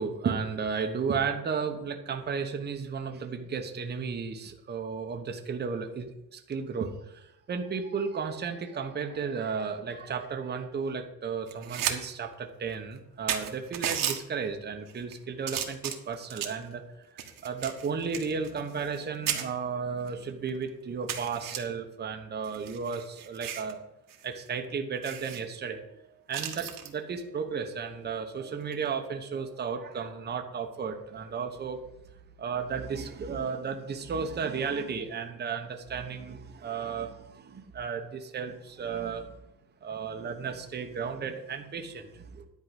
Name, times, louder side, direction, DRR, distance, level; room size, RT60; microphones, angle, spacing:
voice 1, 0.0-16.8 17.1-23.8 24.2-31.8 32.4-39.4 39.8-42.5, right 5 dB, 30° right, 4 dB, 1.0 m, -34 dB
sound 1, 11.5-12.0 12.3-12.4 13.0-13.1 13.3-14.2 14.9-15.1 15.5-16.6 17.2-19.0 19.3-19.4 20.1-20.2 20.5-20.6 21.1-21.6 22.4-23.7 24.1-24.2 24.5-24.6 25.0-25.4 26.3-26.9 28.6-28.9, right 9 dB, 70° right, 1.5 m, -34 dB
10.5 x 4.8 x 7.9 m, 0.88 s
cardioid pair, 160°, 34 cm